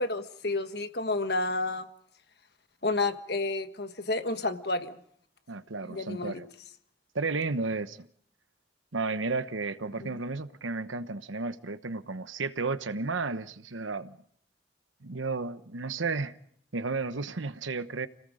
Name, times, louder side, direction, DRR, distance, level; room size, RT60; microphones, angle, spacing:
voice 1, 0.0-1.9 2.8-4.9 5.9-6.4 10.0-10.2, left 2 dB, 55° left, 1.4 m, -30 dB
voice 2, 5.5-6.5 7.1-8.1 8.9-14.2 15.0-16.3 16.7-18.1, right 3 dB, 90° right, 1.1 m, -33 dB
30.0 x 18.5 x 5.0 m
head